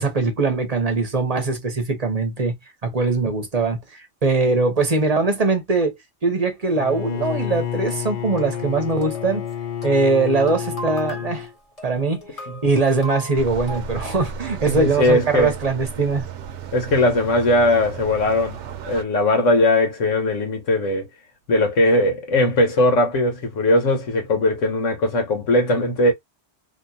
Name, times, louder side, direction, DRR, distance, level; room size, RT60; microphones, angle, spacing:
voice 1, 0.0-2.6 2.8-5.9 6.2-9.5 9.8-11.5 11.8-16.3, right 3 dB, 35° right, 0.7 m, -21 dB
Bowed string instrument, 6.7-11.5, left 9 dB, 55° left, 0.7 m, -29 dB
sound 1, 7.4-13.8, equal, 30° left, 1.3 m, -39 dB
sound 2, 13.3-19.0, right 6 dB, 70° right, 0.9 m, -34 dB
voice 2, 14.7-15.5 16.7-18.6 18.9-21.1 21.5-26.1, left 1 dB, 85° left, 1.6 m, -19 dB
2.9 x 2.9 x 2.7 m
omnidirectional pair, 1.2 m